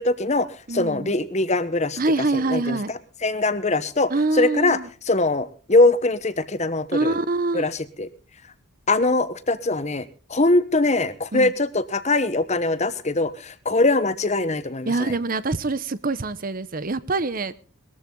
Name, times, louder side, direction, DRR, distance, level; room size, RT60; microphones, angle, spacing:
voice 1, 0.0-2.0 2.3-2.8 3.2-4.8 5.1-7.1 7.5-8.1 8.9-15.1, left 2 dB, 30° left, 14 dB, 1.0 m, -22 dB
voice 2, 0.7-1.1 2.0-2.9 4.1-4.9 6.9-7.7 11.3-11.5 14.9-17.5, right 3 dB, 40° right, 16 dB, 0.8 m, -25 dB
20.5 x 14.0 x 3.8 m, 0.36 s
head